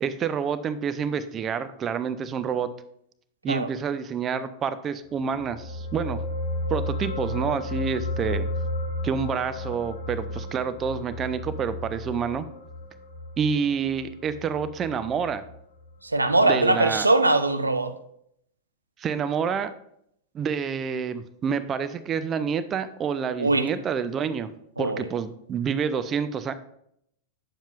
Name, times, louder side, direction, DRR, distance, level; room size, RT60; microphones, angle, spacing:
voice 1, 0.0-2.7 3.4-6.2 6.7-8.5 9.0-12.5 13.4-15.4 16.4-17.1 19.0-19.7 20.3-24.5 24.8-26.5, right 6 dB, 25° right, 0.4 m, -28 dB
sound 1, 5.2-15.9 16.3-16.4, left 1 dB, 60° left, 0.9 m, -33 dB
voice 2, 16.0-17.9 23.4-23.7 24.8-25.0, right 2 dB, 80° right, 0.4 m, -21 dB
8.8 x 7.1 x 2.4 m
figure-of-eight pair, 90°, 0 cm